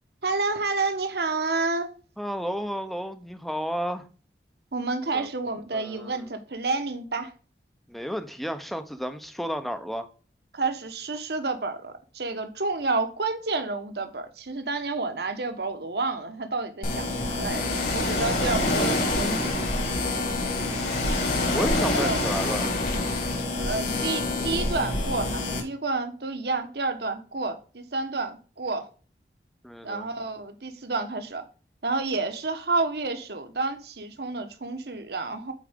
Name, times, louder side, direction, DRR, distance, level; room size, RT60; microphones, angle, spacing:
voice 1, 0.2-1.9 4.7-7.3 10.5-19.5 21.9-22.2 23.5-28.9 29.8-31.4 31.8-35.5, right 3 dB, 65° right, 1.2 m, -29 dB
voice 2, 2.2-4.1 5.1-5.3 5.7-6.3 7.9-10.1 21.5-22.7 29.6-30.1, equal, ahead, 0.6 m, -32 dB
sound 1, 16.8-25.6, left 2 dB, 45° left, 2.0 m, -29 dB
Ocean, 17.5-23.4, left 1 dB, 65° left, 3.8 m, -28 dB
8.4 x 4.6 x 3.6 m
head